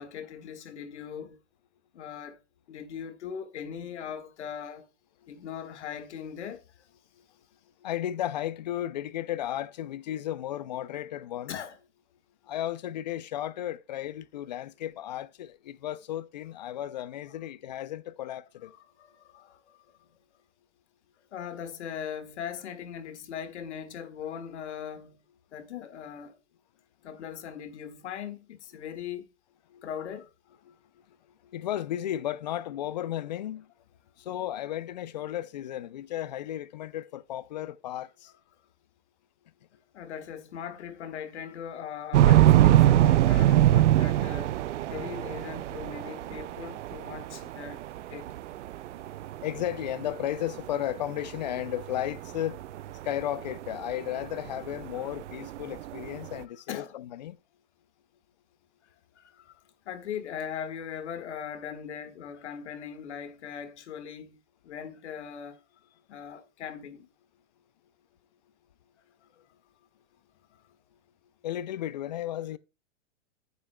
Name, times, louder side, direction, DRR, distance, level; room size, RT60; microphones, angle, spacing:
voice 1, 0.0-1.4 1.9-2.4 2.7-4.9 5.3-6.9 11.5-11.8 19.0-20.1 21.3-25.2 25.5-26.4 27.0-29.3 29.8-30.3 39.9-44.6 44.9-48.3 56.7-56.9 59.1-59.6 59.8-65.6 66.1-67.1 69.3-69.4, left 8 dB, 70° left, 1.7 m, -40 dB
voice 2, 7.8-11.6 12.4-18.7 29.7-29.9 30.7-30.8 31.1-31.2 31.4-33.7 34.2-38.3 48.9-49.1 49.4-52.6 52.9-57.4 71.4-72.6, left 12 dB, 40° left, 0.4 m, -34 dB
sound 1, 42.1-56.3, right 13 dB, 75° right, 0.5 m, -23 dB
9.5 x 9.3 x 2.2 m
supercardioid pair, 170°, 35 cm